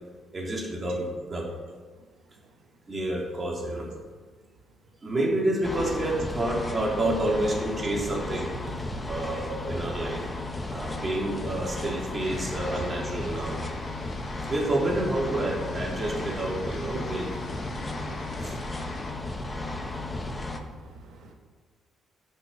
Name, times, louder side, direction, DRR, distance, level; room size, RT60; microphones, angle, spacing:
voice 1, 0.3-1.5 2.9-3.9 5.0-8.5 9.1-10.2 10.7-13.6 14.5-17.3 18.4-18.6, right 1 dB, 30° right, -2 dB, 3.5 m, -29 dB
sound 1, 5.6-20.6, left 2 dB, 20° left, 1.4 m, -34 dB
voice 2, 6.1-6.7 7.8-7.9 12.7-12.9 13.2-13.6 20.6-21.3, right 4 dB, 80° right, 2 dB, 1.7 m, -46 dB
sound 2, 12.2-19.1, left 2 dB, 60° left, 2.4 m, -42 dB
12.0 x 6.8 x 5.8 m, 1.4 s
cardioid pair, 90°, 0 cm